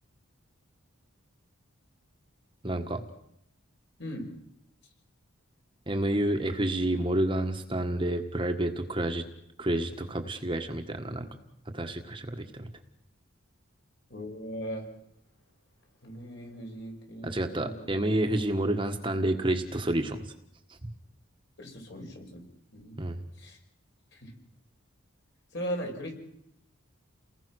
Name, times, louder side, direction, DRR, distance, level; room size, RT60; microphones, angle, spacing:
voice 1, 2.6-3.0 5.9-9.2 9.6-11.3 11.7-12.7 17.2-20.3 20.8-20.9 23.0-23.2, right 1 dB, 25° right, 5 dB, 1.5 m, -29 dB
voice 2, 14.1-14.8 16.0-17.7 21.6-22.4 22.7-23.0 23.4-23.6 24.1-24.3 25.5-26.1, equal, 55° left, 1 dB, 6.5 m, -38 dB
30.0 x 20.5 x 6.4 m, 0.76 s
head